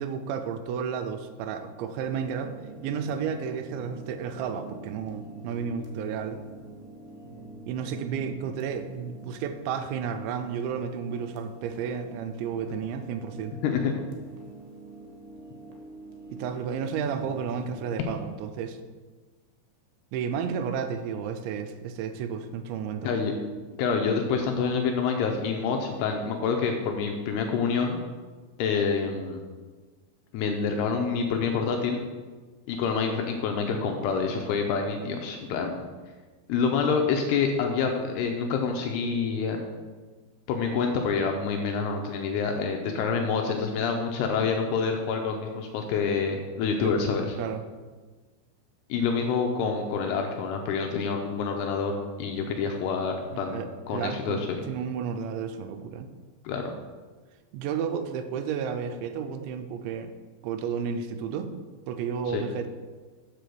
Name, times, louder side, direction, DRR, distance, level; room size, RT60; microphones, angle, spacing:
voice 1, 0.0-2.5 2.8-6.4 7.7-13.6 16.3-18.8 20.1-23.1 46.8-46.9 47.4-47.6 53.3-56.1 57.5-60.1 60.4-61.5 61.9-62.7, right 7 dB, 85° right, 8 dB, 2.9 m, -32 dB
sound 1, 2.0-17.8, right 2 dB, 65° right, 2.5 m, -46 dB
voice 2, 23.8-28.0 28.6-29.4 30.3-32.0 32.7-35.8 36.5-39.6 40.5-47.4 48.9-53.6 53.9-54.6 56.4-56.7 62.3-62.4, left 5 dB, 80° left, 3 dB, 2.4 m, -27 dB
7.8 x 5.3 x 6.8 m, 1.4 s
omnidirectional pair, 5.3 m